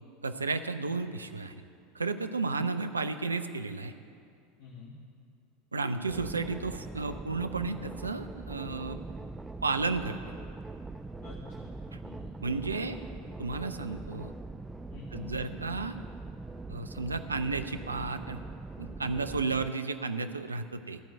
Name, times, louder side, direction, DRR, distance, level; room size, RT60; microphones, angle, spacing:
voice 1, 0.2-1.5 1.9-3.9 5.7-9.0 9.6-10.2 12.4-13.0 13.4-14.3 15.1-15.9 16.7-18.4 18.8-21.0, right 3 dB, 85° right, 10 dB, 0.4 m, -33 dB
voice 2, 4.6-5.0 11.2-11.7 12.0-12.4 12.7-13.0 14.9-15.4, left 3 dB, 50° left, -5 dB, 1.6 m, -47 dB
sound 1, 6.1-19.7, right 2 dB, 10° right, 0.3 m, -42 dB
13.0 x 4.5 x 7.8 m, 2.3 s
figure-of-eight pair, 80°, 0 cm